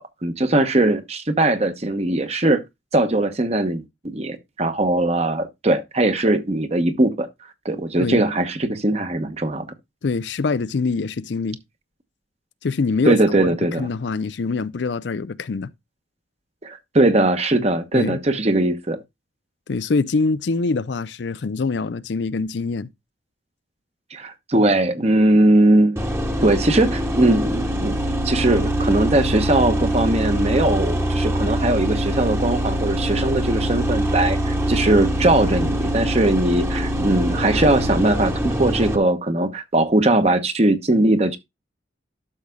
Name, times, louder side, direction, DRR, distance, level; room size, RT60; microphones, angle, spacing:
voice 1, 0.0-2.6 2.9-7.3 7.6-9.7 13.1-13.9 16.6-19.0 24.1-26.0 26.4-28.0 28.2-41.4, right 2 dB, 35° right, 1.0 m, -20 dB
voice 2, 10.0-11.6 12.6-15.7 17.9-18.2 19.7-22.9, left 4 dB, 70° left, 0.5 m, -24 dB
sound 1, 26.0-39.0, equal, 15° right, 1.1 m, -23 dB
12.0 x 6.4 x 2.3 m
head